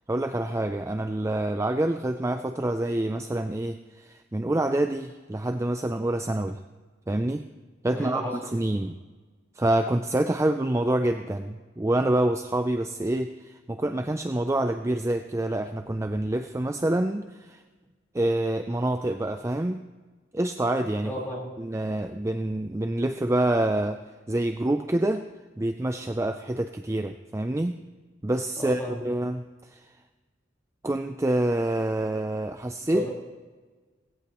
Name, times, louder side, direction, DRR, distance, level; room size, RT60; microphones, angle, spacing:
voice 1, 0.1-6.6 7.1-7.5 7.8-8.9 9.6-17.6 18.1-19.8 20.3-21.1 21.6-24.0 24.3-25.3 25.6-27.8 28.2-29.9 30.8-33.1, right 1 dB, 15° right, 8 dB, 0.4 m, -27 dB
voice 2, 7.9-8.3 21.0-21.5 28.6-29.0 32.9-33.1, left 1 dB, 10° left, -5 dB, 4.1 m, -33 dB
17.5 x 16.5 x 3.0 m, 1.3 s
head